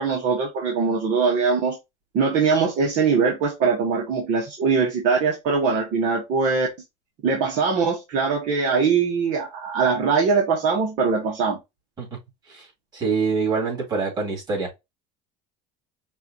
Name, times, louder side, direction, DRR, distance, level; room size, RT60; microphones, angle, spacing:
voice 1, 0.0-1.8 2.1-6.7 7.2-11.6, right 5 dB, 55° right, 1.4 m, -22 dB
voice 2, 12.9-14.8, right 4 dB, 25° right, 3.1 m, -25 dB
5.5 x 2.6 x 2.8 m
cardioid pair, 150°, 15 cm